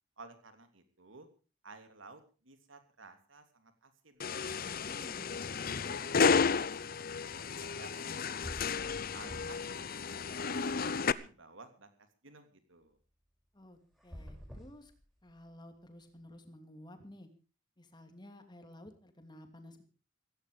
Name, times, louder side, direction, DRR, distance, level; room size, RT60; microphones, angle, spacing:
voice 1, 0.2-1.3 1.6-4.2 4.8-4.9 5.7-8.5 9.1-9.9 10.3-11.9 12.2-13.0, right 3 dB, 75° right, 8 dB, 3.1 m, -55 dB
sound 1, 4.2-11.1, left 5 dB, 50° left, 0.7 m, -32 dB
voice 2, 4.5-5.4 13.5-14.9 15.2-17.3 17.8-19.8, left 1 dB, 20° left, 6 dB, 2.8 m, -53 dB
sound 2, 8.4-9.7 10.1-11.2 13.9-15.5, equal, ahead, 6.0 m, -49 dB
16.5 x 16.0 x 5.0 m, 0.36 s
head